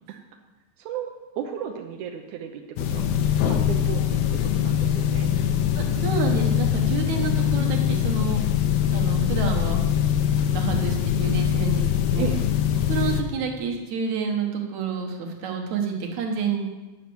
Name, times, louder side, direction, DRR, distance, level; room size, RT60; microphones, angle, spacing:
voice 1, 0.8-1.1 1.4-3.0 3.5-5.3 12.2-12.4, right 8 dB, 80° right, 3 dB, 1.8 m, -34 dB
sound 1, 2.8-13.2, left 9 dB, 80° left, 2.4 m, -23 dB
voice 2, 5.7-8.4 8.9-9.9 10.2-12.3 12.9-16.7, right 5 dB, 60° right, 2 dB, 2.3 m, -29 dB
10.5 x 5.8 x 7.8 m, 1.2 s
omnidirectional pair, 4.2 m